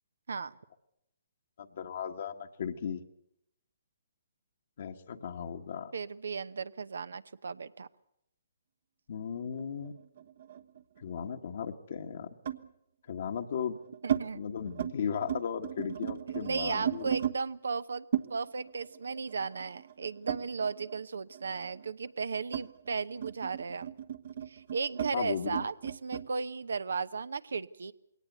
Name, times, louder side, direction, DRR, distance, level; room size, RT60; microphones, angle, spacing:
voice 1, 1.6-3.0 4.8-5.9 9.1-9.9 11.0-12.3 13.1-13.8 14.3-17.1 25.1-25.6, left 7 dB, 60° left, 4 dB, 1.5 m, -36 dB
voice 2, 5.9-7.9 14.0-14.5 16.3-23.9 24.5-27.9, right 5 dB, 75° right, 16 dB, 0.9 m, -35 dB
sound 1, 9.6-11.2 12.5-12.7 13.4-14.2 14.6-14.9 15.2-17.4 18.1-21.0 21.3-26.3, right 9 dB, 60° right, 1.2 m, -36 dB
21.5 x 18.0 x 8.1 m, 0.80 s
hypercardioid pair, 135°, 0 cm